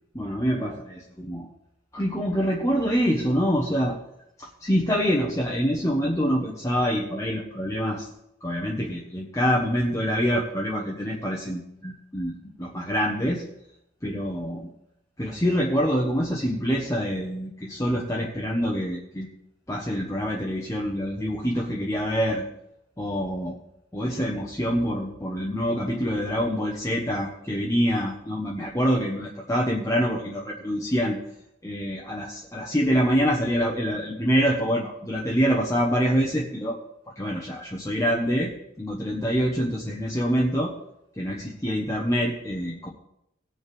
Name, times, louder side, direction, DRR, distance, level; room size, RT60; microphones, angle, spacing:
voice 1, 0.1-0.7 1.2-1.5 1.9-4.0 4.4-8.1 8.4-12.3 12.6-13.4 14.0-14.7 15.2-19.3 19.7-22.4 23.0-23.5 23.9-31.2 31.6-36.8 37.2-38.5 38.8-40.7 41.2-42.9, equal, 15° left, -3 dB, 1.1 m, -25 dB
18.0 x 7.1 x 3.5 m, 0.79 s
head